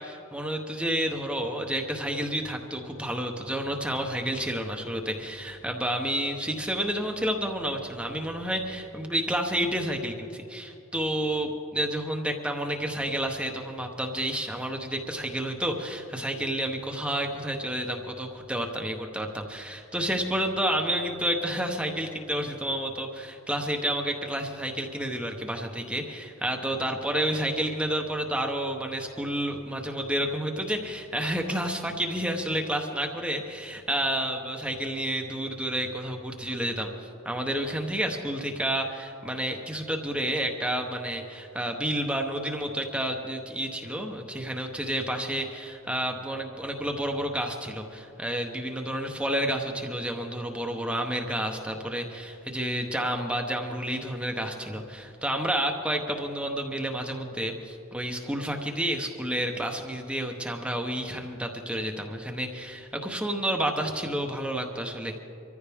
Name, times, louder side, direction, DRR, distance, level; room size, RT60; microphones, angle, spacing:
voice 1, 0.0-65.2, right 1 dB, 5° right, 2 dB, 0.9 m, -30 dB
24.0 x 14.5 x 3.5 m, 2.8 s
head